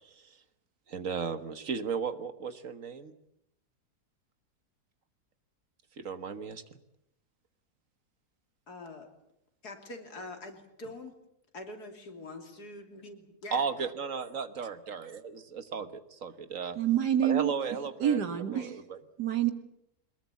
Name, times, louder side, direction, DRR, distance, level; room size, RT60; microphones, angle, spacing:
voice 1, 0.9-3.1 6.0-6.8 13.5-16.8 17.2-18.2 18.5-19.0, right 6 dB, 55° right, 1.6 m, -35 dB
voice 2, 8.7-9.1 9.6-11.2 11.5-13.7 18.5-18.7, left 2 dB, 75° left, 3.5 m, -44 dB
voice 3, 16.8-17.5 18.0-18.7 19.2-19.5, right 10 dB, 85° right, 2.3 m, -27 dB
23.0 x 21.0 x 8.4 m
omnidirectional pair, 1.7 m